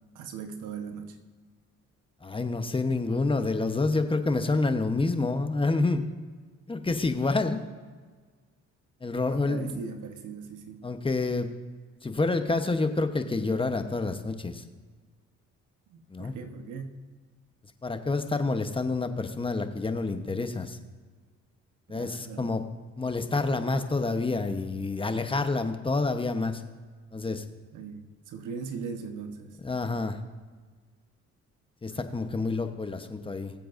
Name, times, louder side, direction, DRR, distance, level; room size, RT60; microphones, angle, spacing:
voice 1, 0.1-1.2 9.2-10.8 15.9-17.0 21.9-22.5 27.7-29.6 31.9-32.5, right 5 dB, 80° right, 6 dB, 1.2 m, -40 dB
voice 2, 2.2-6.1 6.7-7.6 9.0-9.8 10.8-11.5 12.0-14.6 16.1-16.3 17.8-20.8 21.9-22.6 23.0-26.6 27.1-27.4 29.6-30.2 31.8-33.5, left 3 dB, 15° left, 7 dB, 0.9 m, -28 dB
22.0 x 7.7 x 2.6 m, 1.5 s
cardioid pair, 90°, 30 cm